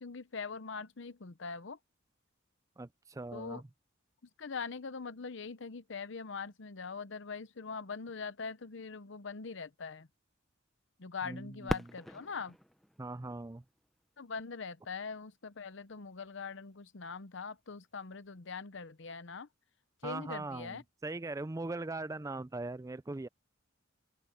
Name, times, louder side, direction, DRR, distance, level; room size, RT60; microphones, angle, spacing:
voice 1, 0.0-1.8 3.3-3.6 4.4-10.1 11.0-12.6 14.2-19.5 20.0-20.8, left 5 dB, 60° left, 0.8 m, -42 dB
voice 2, 2.8-3.6 11.2-11.9 13.0-13.6 20.0-23.3, right 2 dB, 15° right, 0.4 m, -40 dB
Fireworks, 11.7-14.4 15.1-15.2 15.9-16.3 18.2-18.4, equal, ahead, 1.0 m, -41 dB
open air
head